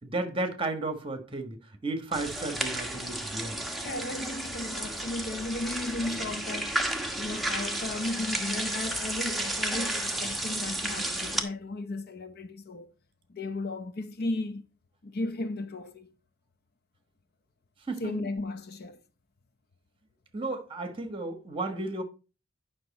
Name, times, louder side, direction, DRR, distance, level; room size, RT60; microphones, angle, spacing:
voice 1, 0.0-1.6 1.8-3.6 17.9-18.1 20.3-22.0, right 2 dB, 25° right, 1.4 m, -33 dB
sound 1, 2.1-11.4, right 1 dB, ahead, 1.1 m, -32 dB
voice 2, 3.8-6.8 7.2-12.9 13.3-14.6 15.0-16.1 18.0-19.0, left 2 dB, 50° left, 0.7 m, -35 dB
9.6 x 6.0 x 4.1 m
head